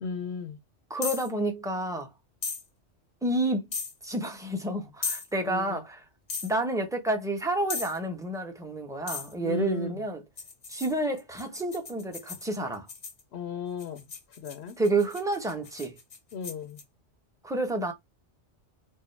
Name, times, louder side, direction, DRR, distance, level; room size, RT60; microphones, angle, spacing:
voice 1, 0.0-0.6 5.4-5.8 9.4-10.0 13.3-14.1 14.4-14.8 16.3-16.8, left 4 dB, 70° left, 0.8 m, -35 dB
voice 2, 0.9-2.1 3.2-3.7 4.0-6.0 6.4-10.2 10.7-12.9 14.8-16.0 17.4-17.9, right 2 dB, 5° right, 0.7 m, -29 dB
sound 1, 1.0-1.3 2.4-2.6 3.7-3.9 5.0-5.3 6.3-6.5 7.7-8.0 9.1-9.3 10.4-13.2 13.8-16.8, left 4 dB, 40° left, 0.6 m, -36 dB
4.4 x 2.1 x 3.2 m
omnidirectional pair, 1.2 m